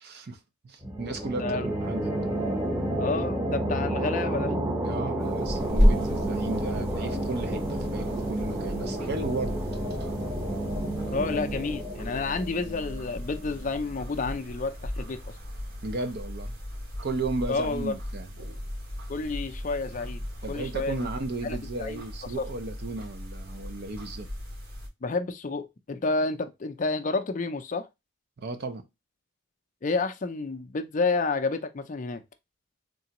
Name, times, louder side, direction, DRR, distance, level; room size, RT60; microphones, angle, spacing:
voice 1, 0.0-2.2 4.8-9.6 15.8-16.6 17.0-18.3 20.4-24.3 28.4-28.9, right 3 dB, 50° right, 0.5 m, -34 dB
sound 1, 0.8-14.2, right 1 dB, 10° right, 0.7 m, -31 dB
voice 2, 3.0-4.6 11.1-15.3 17.5-17.9 19.1-21.1 21.4-21.9 22.4-22.5 25.0-27.9 29.8-32.2, left 3 dB, 35° left, 0.4 m, -30 dB
sound 2, 5.2-24.9, equal, 80° right, 2.6 m, -33 dB
3.8 x 3.3 x 2.9 m
head